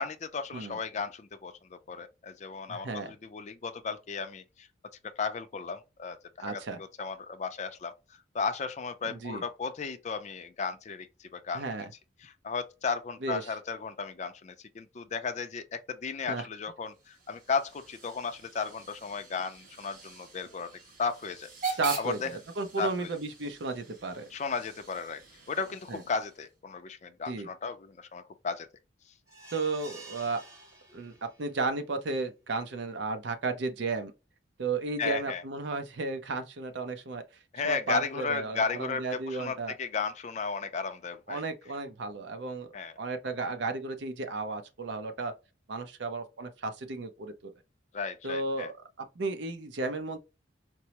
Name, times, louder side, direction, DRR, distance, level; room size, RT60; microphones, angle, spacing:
voice 1, 0.0-4.7 5.0-8.0 8.3-11.6 12.2-20.7 21.0-22.3 22.8-23.1 24.3-25.2 25.5-28.7 35.0-35.4 37.5-41.4 42.7-42.9 47.9-48.7, left 5 dB, 40° left, 0.4 m, -35 dB
voice 2, 2.7-3.1 6.4-6.8 9.0-9.4 11.5-11.9 13.2-13.4 16.3-16.5 21.8-24.3 25.9-26.0 27.3-27.5 29.5-30.4 30.9-34.1 34.6-37.2 37.6-39.7 41.3-42.7 43.0-45.3 45.7-47.5 48.2-48.7 49.2-50.2, right 3 dB, 65° right, 0.6 m, -33 dB
Hiss / Train / Alarm, 16.9-26.5, right 4 dB, 45° right, 1.2 m, -43 dB
sound 1, 29.3-31.5 32.0-32.1 32.4-32.5, right 2 dB, 20° right, 1.0 m, -50 dB
4.4 x 2.0 x 2.8 m
head